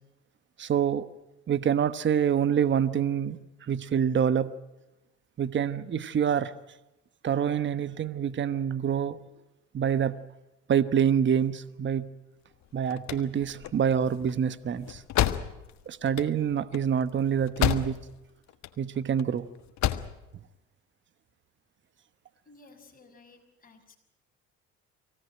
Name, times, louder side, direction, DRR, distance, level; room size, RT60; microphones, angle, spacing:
voice 1, 0.6-1.1 1.5-4.5 5.4-6.5 7.2-9.2 9.7-10.2 10.7-12.1 12.7-15.0 15.9-18.1 18.8-19.5, right 8 dB, 40° right, 15 dB, 1.1 m, -26 dB
sound 1, 12.6-18.2 18.5-19.2 19.6-20.2, left 12 dB, 65° left, 1.5 m, -30 dB
voice 2, 22.4-24.0, left 3 dB, 30° left, 2 dB, 5.8 m, -55 dB
24.0 x 17.0 x 9.1 m, 0.96 s
supercardioid pair, 90°, 31 cm